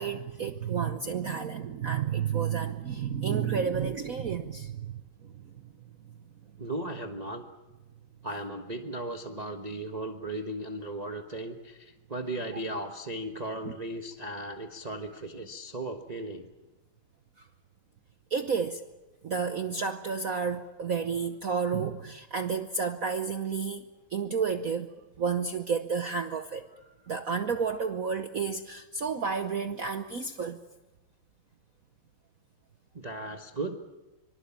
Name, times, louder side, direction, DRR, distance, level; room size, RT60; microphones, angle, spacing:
voice 1, 0.0-5.0 13.6-13.7 18.3-18.8 19.2-23.8 24.1-24.9 25.2-30.6, right 6 dB, 50° right, 7 dB, 1.1 m, -31 dB
voice 2, 6.6-7.4 8.2-16.5 32.9-33.8, right 1 dB, 25° right, 3 dB, 1.2 m, -36 dB
25.0 x 24.5 x 7.2 m, 1.1 s
omnidirectional pair, 2.3 m